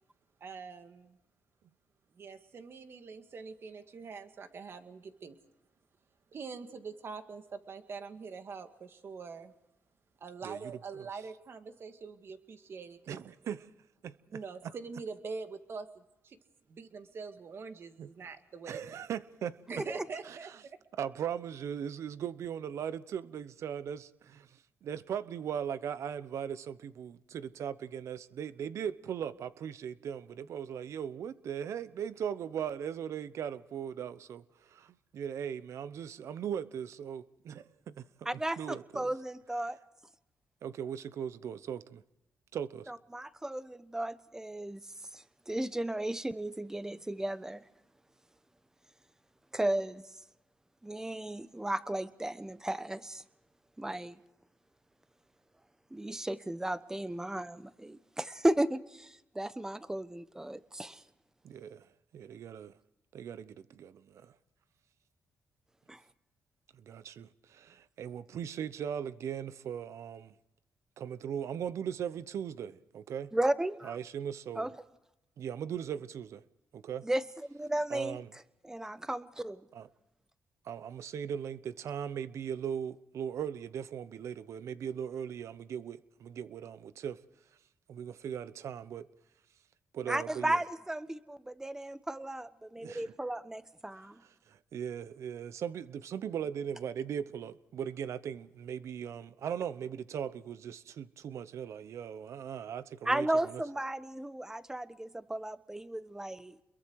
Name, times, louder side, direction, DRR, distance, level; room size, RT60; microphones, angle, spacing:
voice 1, 0.4-1.2 2.1-5.4 6.3-9.5 10.2-13.3 14.3-16.4 16.7-19.0 19.7-20.8, right 5 dB, 55° right, 2.1 m, -44 dB
voice 2, 13.1-13.6 14.0-14.1 18.0-18.1 18.7-19.6 21.0-38.0 38.6-39.1 40.6-42.0 42.5-42.9 61.4-62.7 63.1-64.3 66.8-70.3 71.0-73.3 73.8-74.7 75.4-76.4 76.7-77.1 77.9-78.3 79.7-79.9 80.6-87.2 87.9-89.1 89.9-90.6 92.8-93.1 94.5-103.6, right 8 dB, 70° right, 0.9 m, -39 dB
voice 3, 38.2-38.6 38.9-39.8 42.9-44.8 45.1-47.6 49.5-50.0 50.8-53.2 53.8-54.2 55.9-61.0 65.9-66.0 73.3-74.0 74.6-74.7 77.0-77.2 77.5-78.2 78.6-79.6 90.1-94.2 103.0-106.6, right 1 dB, 10° right, 1.1 m, -34 dB
28.5 x 22.5 x 4.8 m
cardioid pair, 90°, 5 cm